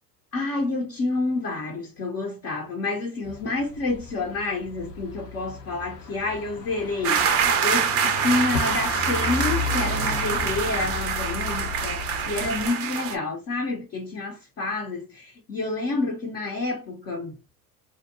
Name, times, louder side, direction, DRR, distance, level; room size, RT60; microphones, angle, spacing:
voice 1, 0.3-17.4, left 3 dB, 30° left, 0.6 m, -29 dB
sound 1, 3.2-12.7, left 4 dB, 90° left, 0.8 m, -34 dB
sound 2, 7.0-13.2, right 6 dB, 30° right, 0.5 m, -25 dB
2.6 x 2.2 x 2.6 m
hypercardioid pair, 80°, 47 cm